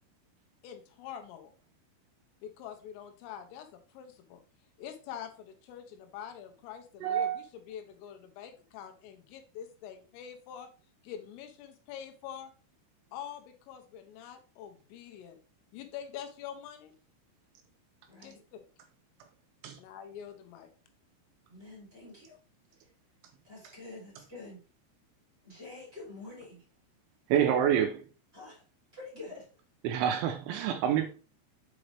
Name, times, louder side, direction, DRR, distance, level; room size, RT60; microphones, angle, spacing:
voice 1, 0.6-1.5 2.4-4.4 4.8-10.7 11.0-12.5 13.1-15.4 15.7-16.9 18.2-18.6 19.8-20.7, left 9 dB, 85° left, 3.4 m, -45 dB
voice 2, 7.0-7.4 19.6-19.8 27.3-28.0 29.8-31.1, right 9 dB, 80° right, 2.8 m, -27 dB
voice 3, 18.1-18.4 21.5-22.4 23.4-24.6 25.4-26.6 28.3-28.6 28.9-29.4, left 3 dB, 25° right, 1.4 m, -47 dB
7.6 x 5.0 x 3.3 m
omnidirectional pair, 5.9 m